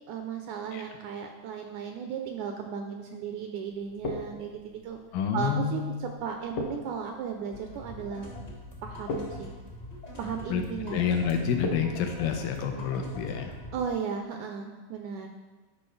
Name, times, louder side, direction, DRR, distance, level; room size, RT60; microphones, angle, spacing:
voice 1, 0.1-5.0 5.3-8.3 8.8-9.5 10.2-11.0 13.7-15.3, right 7 dB, 80° right, 4 dB, 1.8 m, -35 dB
sound 1, 3.7-13.6, left 2 dB, 65° left, 1.8 m, -41 dB
voice 2, 5.1-6.0 10.5-13.6, left 7 dB, 85° left, 4 dB, 2.4 m, -29 dB
sound 2, 7.5-13.9, left 1 dB, 45° left, 0.5 m, -43 dB
12.5 x 5.2 x 3.2 m, 1.2 s
omnidirectional pair, 3.8 m